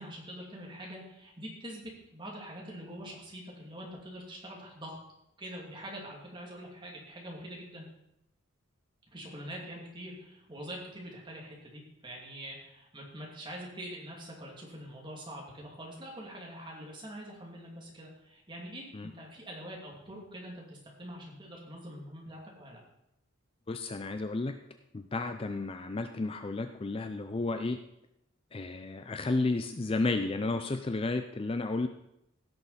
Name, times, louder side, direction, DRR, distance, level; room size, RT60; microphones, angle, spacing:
voice 1, 0.0-5.0 5.4-7.9 9.1-22.8, equal, 20° right, -2 dB, 2.5 m, -44 dB
voice 2, 23.7-24.5 24.9-27.8 28.5-31.9, left 3 dB, 25° left, 7 dB, 0.4 m, -32 dB
16.5 x 6.6 x 4.1 m, 0.81 s
head